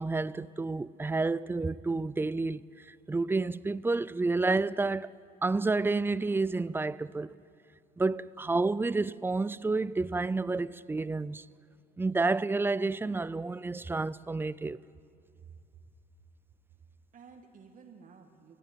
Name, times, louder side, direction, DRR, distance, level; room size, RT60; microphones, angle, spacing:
voice 1, 0.0-5.1 5.4-7.4 8.0-11.5 12.0-14.8, right 3 dB, 15° right, 0.5 m, -30 dB
voice 2, 15.4-15.9 16.7-16.8 17.1-18.6, right 6 dB, 50° right, 2.0 m, -53 dB
24.0 x 16.5 x 9.7 m
cardioid pair, 110°, 17 cm